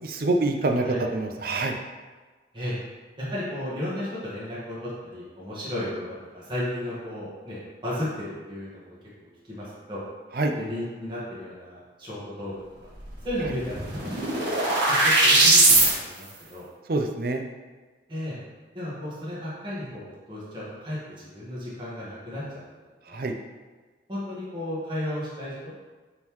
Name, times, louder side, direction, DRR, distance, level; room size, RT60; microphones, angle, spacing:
voice 1, 0.0-1.7 10.3-10.5 16.9-17.4 23.1-23.3, right 2 dB, 50° right, 3 dB, 0.5 m, -26 dB
voice 2, 3.2-10.0 10.5-12.6 13.2-14.5 14.8-16.6 18.1-18.4 18.7-22.4 23.1-23.2 24.1-25.7, left 1 dB, 25° right, -8 dB, 1.6 m, -34 dB
sound 1, 13.1-13.2 13.4-15.9, right 2 dB, 90° right, 1.7 m, -20 dB
9.5 x 3.8 x 3.1 m, 1.3 s
head